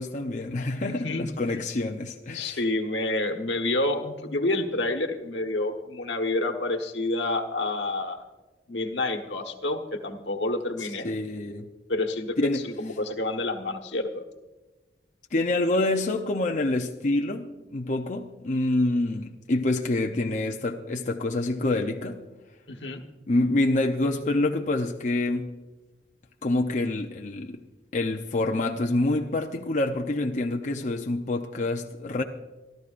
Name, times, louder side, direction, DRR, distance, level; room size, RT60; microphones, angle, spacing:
voice 1, 0.0-2.6 10.8-11.7 12.4-12.7 15.3-22.2 23.3-25.5 26.4-27.6 27.9-32.2, left 2 dB, 45° left, 0.7 m, -27 dB
voice 2, 0.9-1.3 2.3-8.2 8.7-11.1 11.9-14.2 22.7-23.0, left 2 dB, 80° left, 1.3 m, -28 dB
24.5 x 13.5 x 2.5 m
head